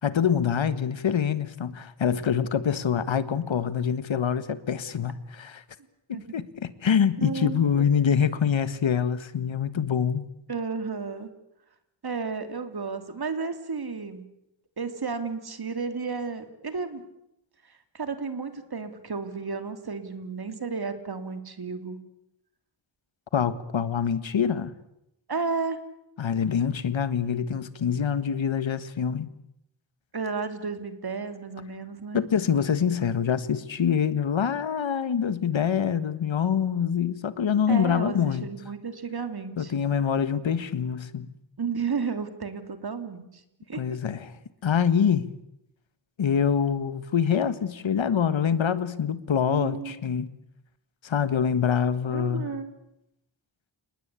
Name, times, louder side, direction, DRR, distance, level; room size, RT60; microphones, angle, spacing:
voice 1, 0.0-5.6 6.1-10.3 23.3-24.7 26.2-29.3 32.1-38.5 39.6-41.3 43.7-44.3 44.6-45.3 46.2-50.3 51.0-52.5, left 7 dB, 75° left, 1.7 m, -25 dB
voice 2, 7.2-7.8 10.5-11.3 12.0-14.3 14.8-17.0 17.9-22.0 25.3-25.8 30.1-32.2 37.7-39.7 41.6-43.4 43.7-43.8 49.5-49.9 52.1-52.7, right 5 dB, 55° right, 3.0 m, -32 dB
30.0 x 19.5 x 8.4 m
wide cardioid pair, 110°, 46 cm